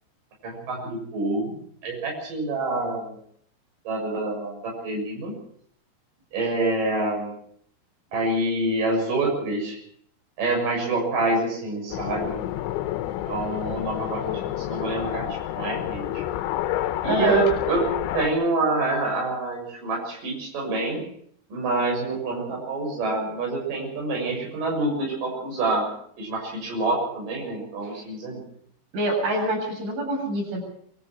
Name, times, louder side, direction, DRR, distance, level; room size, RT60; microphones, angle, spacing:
voice 1, 0.4-1.5 1.8-3.2 3.8-5.3 6.3-7.3 8.1-9.8 10.4-12.4 13.2-16.2 17.0-21.0 21.5-25.9 26.2-28.4, right 2 dB, 45° right, -1 dB, 8.3 m, -27 dB
sound 1, 11.9-18.3, left 13 dB, 80° left, 3.4 m, -29 dB
voice 2, 17.0-17.4 28.9-30.6, right 1 dB, 85° right, -1 dB, 10.5 m, -25 dB
24.5 x 14.0 x 8.0 m, 0.66 s
omnidirectional pair, 5.3 m